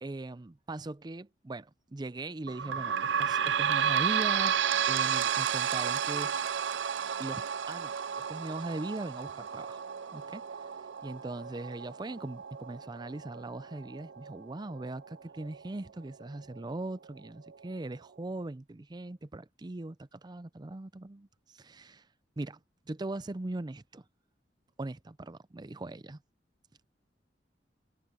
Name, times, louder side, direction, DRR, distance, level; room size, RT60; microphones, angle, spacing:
voice 1, 0.0-4.6 4.9-6.4 7.2-9.8 10.1-10.4 11.0-22.0 22.4-22.6 22.9-24.0 24.8-26.2, right 2 dB, 25° right, 0.5 m, -40 dB
sound 1, 2.5-15.6 16.2-16.3 16.6-16.7 17.5-17.6, right 8 dB, 80° right, 0.4 m, -32 dB
Wind instrument woodwind instrument, 9.1-15.3, left 7 dB, 80° left, 2.2 m, -63 dB
head